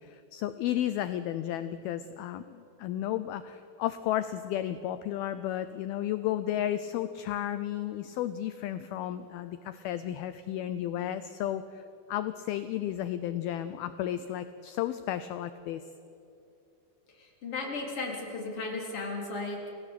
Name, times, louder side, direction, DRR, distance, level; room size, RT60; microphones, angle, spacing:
voice 1, 0.0-11.8 12.1-15.8, left 12 dB, 80° left, 12 dB, 2.2 m, -33 dB
voice 2, 17.1-19.8, left 3 dB, 35° left, 0 dB, 4.4 m, -35 dB
28.5 x 16.5 x 8.3 m, 2.7 s
omnidirectional pair, 5.1 m